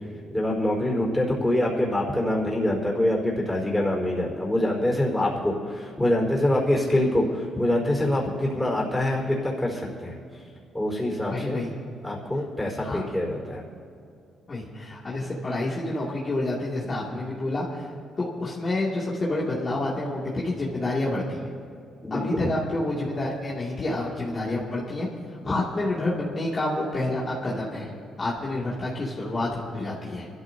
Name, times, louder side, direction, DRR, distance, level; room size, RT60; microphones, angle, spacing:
voice 1, 0.3-10.1 10.7-11.6 12.0-13.6 22.0-22.5, left 1 dB, 5° left, -3 dB, 4.4 m, -25 dB
voice 2, 11.3-11.7 12.8-13.0 14.5-17.9 18.2-21.5 22.1-25.1 25.4-27.9 28.2-30.3, left 2 dB, 35° left, -7 dB, 2.5 m, -28 dB
24.0 x 13.5 x 2.8 m, 2.5 s
cardioid pair, 90°, 0 cm